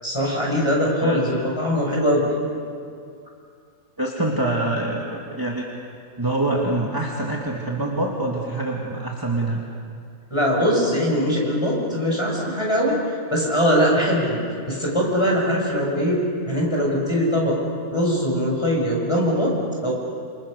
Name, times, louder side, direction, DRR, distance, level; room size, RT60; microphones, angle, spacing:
voice 1, 0.0-2.3 10.3-13.0 13.3-14.4 14.7-16.2 16.5-17.6 17.9-19.5 19.8-19.9, equal, 20° left, -3 dB, 6.7 m, -21 dB
voice 2, 4.0-5.7 6.2-9.6, right 2 dB, 15° right, -2 dB, 2.3 m, -25 dB
28.5 x 27.5 x 6.7 m, 2.4 s
omnidirectional pair, 1.5 m